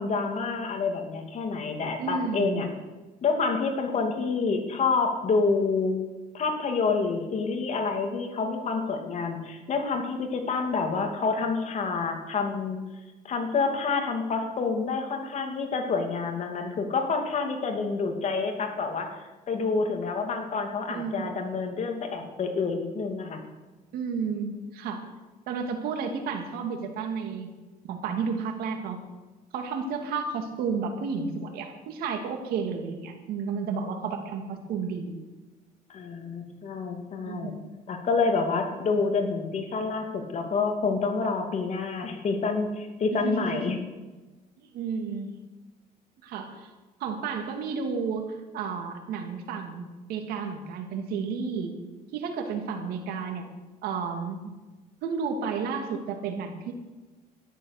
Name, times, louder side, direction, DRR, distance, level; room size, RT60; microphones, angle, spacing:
voice 1, 0.0-2.7 3.2-6.0 6.3-12.8 13.2-19.1 19.5-23.4 35.9-37.5 37.9-43.8, left 4 dB, 50° left, 4 dB, 2.7 m, -28 dB
voice 2, 2.0-2.6 20.9-21.4 23.9-25.0 25.5-27.5 27.9-29.0 29.5-35.2 37.2-37.5 43.1-43.8 44.6-45.3 46.2-46.7 47.0-49.8 50.1-51.7 52.1-53.5 53.8-54.5 55.0-56.7, right 5 dB, 80° right, 4 dB, 2.6 m, -32 dB
13.0 x 10.5 x 6.8 m, 1.2 s
cardioid pair, 110°, 15 cm